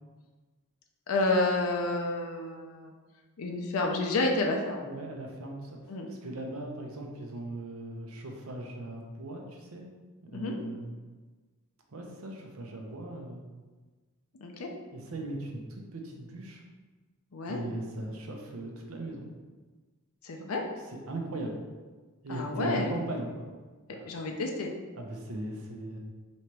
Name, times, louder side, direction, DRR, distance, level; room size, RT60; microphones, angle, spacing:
voice 1, 1.1-2.9 3.4-4.8 5.9-6.1 10.3-10.5 14.4-14.7 17.3-17.6 20.2-20.6 22.3-22.9 23.9-24.7, left 2 dB, 85° left, 1 dB, 0.5 m, -30 dB
voice 2, 4.8-9.8 10.3-11.0 11.9-13.4 14.9-16.6 17.5-19.3 20.9-21.6 22.2-23.5 23.9-24.1 24.9-26.0, right 2 dB, 85° right, 1 dB, 0.7 m, -38 dB
3.2 x 2.9 x 4.5 m, 1.3 s
head